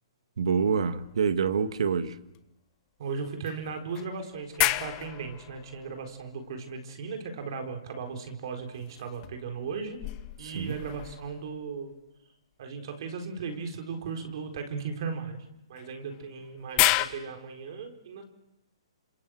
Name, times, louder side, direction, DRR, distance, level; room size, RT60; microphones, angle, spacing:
voice 1, 0.4-2.1 10.4-10.8, right 6 dB, 75° right, 12 dB, 1.7 m, -26 dB
sound 1, 0.7-2.0 2.3-2.4 3.5-6.9 8.7-11.8 13.5-13.7 15.8-17.1, left 18 dB, 25° left, 1.1 m, -32 dB
voice 2, 3.0-10.0 10.4-11.9 12.6-18.2, right 5 dB, 50° right, 5 dB, 4.2 m, -37 dB
27.5 x 26.5 x 7.8 m, 0.91 s
hypercardioid pair, 160°, 3 cm